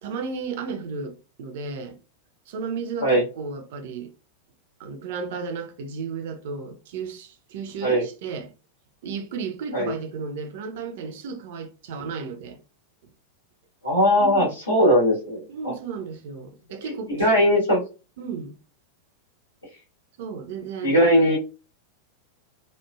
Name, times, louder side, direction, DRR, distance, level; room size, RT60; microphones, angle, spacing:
voice 1, 0.0-2.0 2.5-4.1 4.8-8.5 9.0-12.6 14.2-14.5 15.5-17.4 18.2-18.6 20.2-21.0, right 5 dB, 55° right, 0.5 m, -34 dB
voice 2, 13.8-15.7 17.1-17.8 20.8-21.4, equal, 80° left, 1.4 m, -19 dB
3.1 x 2.1 x 2.2 m
figure-of-eight pair, 90°, 0 cm